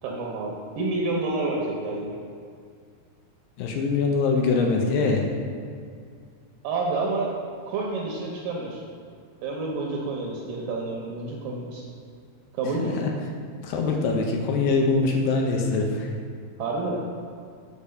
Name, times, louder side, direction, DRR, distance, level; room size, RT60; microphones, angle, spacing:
voice 1, 0.0-2.2 6.6-7.3 7.6-8.8 9.4-11.8 12.5-12.9 16.6-17.0, right 3 dB, 75° right, -2 dB, 2.3 m, -29 dB
voice 2, 3.6-5.3 12.8-13.1 13.6-16.1, left 4 dB, 75° left, 1 dB, 2.3 m, -23 dB
6.7 x 5.1 x 6.3 m, 2.2 s
omnidirectional pair, 4.4 m